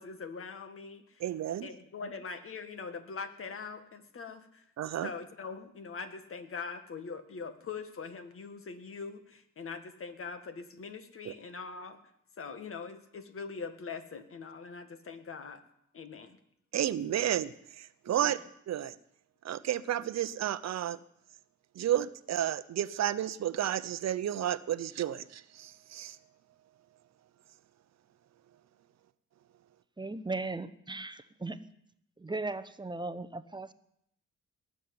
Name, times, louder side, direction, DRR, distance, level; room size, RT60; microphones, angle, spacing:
voice 1, 0.0-1.2 1.6-12.0 12.4-15.6 15.9-16.4 18.1-18.3, left 5 dB, 45° left, 8 dB, 1.9 m, -42 dB
voice 2, 1.2-1.7 4.8-5.1 11.2-11.3 16.7-18.4 18.7-18.9 19.4-21.0 21.7-26.2, right 11 dB, 60° right, 14 dB, 0.9 m, -32 dB
voice 3, 30.0-31.6 32.2-33.7, right 3 dB, 15° right, 11 dB, 0.9 m, -37 dB
19.5 x 7.6 x 9.6 m, 0.72 s
cardioid pair, 90°, 30 cm